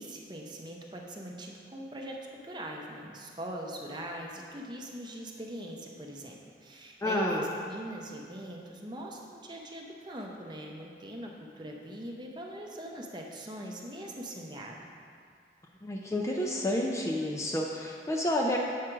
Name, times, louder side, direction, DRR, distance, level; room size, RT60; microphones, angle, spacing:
voice 1, 0.0-14.9, right 1 dB, 25° right, 0 dB, 0.6 m, -42 dB
voice 2, 7.0-7.5 15.8-18.6, left 1 dB, 15° left, -1 dB, 0.4 m, -30 dB
7.4 x 4.9 x 4.5 m, 2.3 s
head